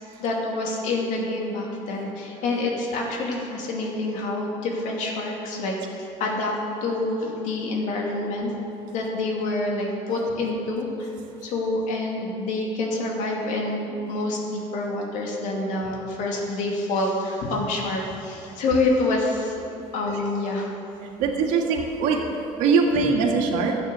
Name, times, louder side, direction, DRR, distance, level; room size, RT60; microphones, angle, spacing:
voice 1, 0.2-6.6 6.8-8.5 8.9-11.1 11.4-19.5 19.9-20.7, left 2 dB, 75° left, -1 dB, 2.5 m, -27 dB
voice 2, 21.0-23.8, right 4 dB, 85° right, 1 dB, 1.8 m, -22 dB
12.0 x 8.7 x 6.9 m, 2.8 s
cardioid pair, 100°, 13 cm